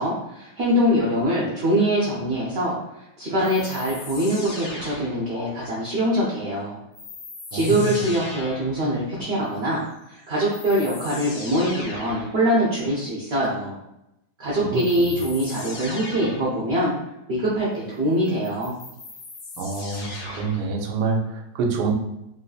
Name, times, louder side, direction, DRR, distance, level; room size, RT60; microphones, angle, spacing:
voice 1, 0.0-2.8 3.2-6.8 7.5-9.8 10.1-13.8 14.4-16.9 17.3-18.7, equal, 55° right, -6 dB, 0.7 m, -23 dB
sound 1, 3.4-5.5 6.9-8.8 10.0-10.1 10.5-12.4 14.7-16.5 18.2-20.7, left 2 dB, 90° left, 1.5 m, -38 dB
voice 2, 7.5-8.0 14.7-15.0 19.6-21.9, right 4 dB, 75° right, 1 dB, 1.1 m, -27 dB
3.2 x 2.6 x 2.3 m, 0.87 s
omnidirectional pair, 1.9 m